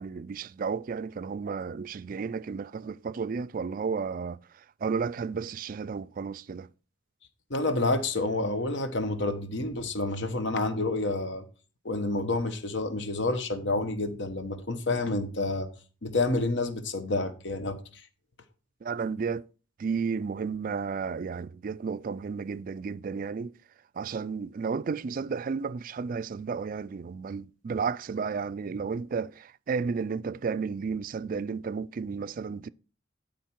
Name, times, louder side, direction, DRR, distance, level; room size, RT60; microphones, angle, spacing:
voice 1, 0.0-4.4 4.8-6.7 18.8-19.5 19.8-23.5 24.0-32.7, right 5 dB, 45° right, 0.3 m, -32 dB
voice 2, 7.5-11.4 11.8-15.7 16.0-17.8, left 2 dB, 60° left, 1.1 m, -29 dB
12.0 x 5.1 x 4.5 m
head